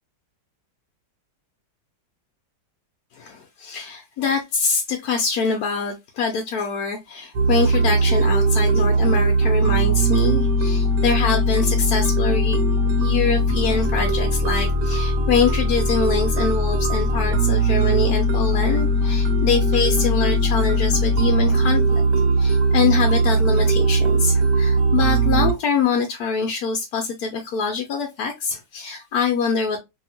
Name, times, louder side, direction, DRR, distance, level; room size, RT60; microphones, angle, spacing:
voice 1, 3.1-12.6 13.0-29.8, left 5 dB, 70° left, 1.0 m, -24 dB
sound 1, 7.3-25.5, right 1 dB, 75° right, 1.2 m, -19 dB
2.9 x 2.7 x 2.7 m
omnidirectional pair, 1.9 m